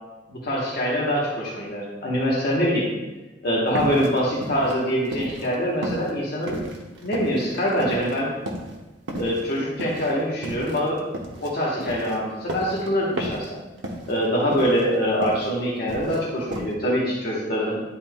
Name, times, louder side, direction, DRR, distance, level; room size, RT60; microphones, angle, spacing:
voice 1, 0.3-2.9 3.4-6.7 7.0-8.3 9.2-11.1 11.4-13.6 14.1-17.8, equal, 55° left, -4 dB, 1.1 m, -24 dB
sound 1, 3.7-5.6 5.8-8.2 8.5-8.8 9.1-11.5 11.8-12.9 13.2-13.5 13.8-14.3 14.5-15.5 15.8-16.3 16.5-16.7, right 1 dB, 75° right, 1.0 m, -33 dB
10.5 x 4.2 x 2.3 m, 1.1 s
head